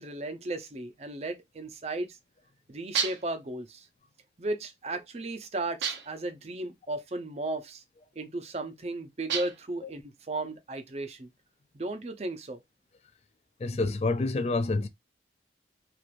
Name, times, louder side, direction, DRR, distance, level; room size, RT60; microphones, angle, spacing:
voice 1, 0.0-2.2 2.7-3.9 4.4-7.8 8.2-11.3 11.7-12.6, right 2 dB, 35° right, 0.6 m, -35 dB
sound 1, 3.0-3.4 5.8-6.3 9.3-9.8, right 7 dB, 90° right, 0.7 m, -31 dB
voice 2, 13.6-14.9, left 3 dB, 35° left, 0.3 m, -27 dB
3.1 x 2.5 x 2.4 m
head